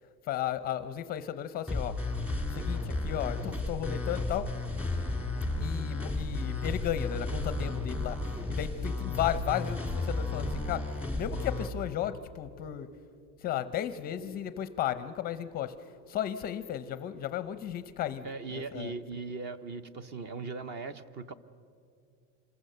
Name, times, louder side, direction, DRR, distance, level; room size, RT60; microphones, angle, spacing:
voice 1, 0.3-2.0 2.5-4.5 5.6-8.2 8.5-12.9 13.4-15.7 16.1-18.9, left 11 dB, 25° left, 13 dB, 0.5 m, -34 dB
sound 1, 1.7-11.7, left 2 dB, 5° right, 1.7 m, -33 dB
voice 2, 18.2-21.3, right 4 dB, 30° right, 14 dB, 0.6 m, -39 dB
26.5 x 21.0 x 6.7 m, 2.4 s
supercardioid pair, 170°, 36 cm